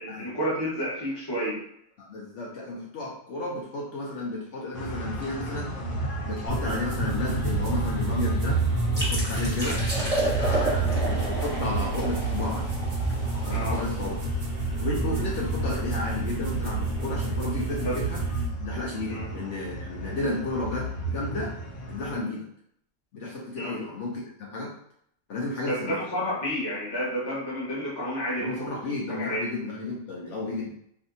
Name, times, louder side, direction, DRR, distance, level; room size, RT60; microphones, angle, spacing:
voice 1, 0.0-1.6 13.5-13.8 17.8-17.9 19.1-19.3 23.6-23.8 25.6-28.8 29.1-29.5, equal, 20° left, -6 dB, 0.7 m, -30 dB
voice 2, 2.0-5.7 6.3-8.6 8.9-12.7 13.3-14.2 14.8-18.2 18.6-21.5 21.9-22.4 23.1-24.7 25.3-26.0 28.4-30.7, left 2 dB, 65° left, -4 dB, 0.9 m, -33 dB
sound 1, 4.7-22.2, right 1 dB, 90° left, 1.1 m, -32 dB
sound 2, 6.5-18.5, right 3 dB, 55° right, 0.8 m, -30 dB
sound 3, 8.9-14.5, right 1 dB, 10° right, 1.1 m, -32 dB
2.6 x 2.5 x 2.6 m, 0.70 s
omnidirectional pair, 1.4 m